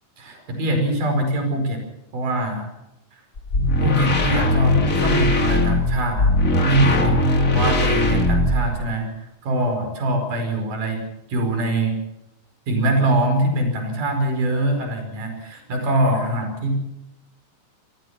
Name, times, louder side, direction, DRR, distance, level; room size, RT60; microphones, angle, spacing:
voice 1, 0.2-1.8 2.1-2.7 3.8-6.4 6.6-7.2 7.5-9.1 9.4-11.0 11.3-12.0 12.7-16.8, right 1 dB, 45° right, 5 dB, 6.3 m, -23 dB
sound 1, 3.4-8.9, left 1 dB, 35° left, 1.3 m, -19 dB
27.5 x 19.0 x 5.9 m, 0.91 s
omnidirectional pair, 5.3 m